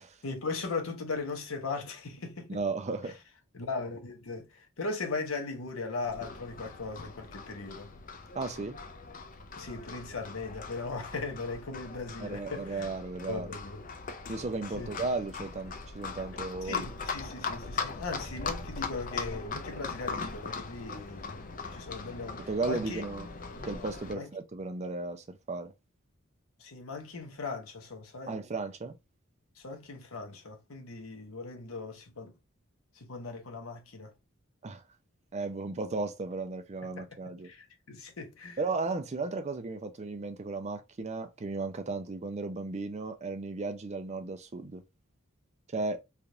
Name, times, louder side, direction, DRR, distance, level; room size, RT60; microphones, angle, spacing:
voice 1, 0.2-2.6 3.5-7.9 9.6-12.9 13.3-13.9 14.8-14.9 16.6-23.0 24.1-24.3 26.6-28.4 29.6-32.3 32.9-34.1 36.9-38.6, left 3 dB, 80° left, 0.9 m, -38 dB
voice 2, 2.5-3.2 8.3-8.8 12.2-13.5 14.3-16.9 22.4-23.3 23.6-25.7 28.3-29.0 34.6-34.8 35.3-37.5 38.6-44.8 45.7-46.0, right 3 dB, 35° right, 0.5 m, -35 dB
Livestock farm animals working animals, 6.0-24.1, left 4 dB, 40° left, 0.5 m, -40 dB
3.4 x 2.4 x 2.6 m
head